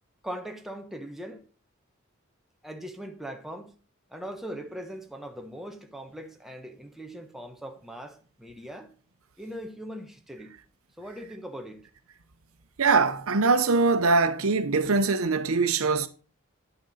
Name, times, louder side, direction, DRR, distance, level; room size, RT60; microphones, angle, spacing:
voice 1, 0.2-1.5 2.6-3.7 4.1-8.9 9.4-10.5 11.0-11.9, equal, ahead, 1.0 m, -40 dB
voice 2, 12.8-16.1, right 4 dB, 80° right, 0.8 m, -22 dB
9.8 x 6.8 x 4.1 m
head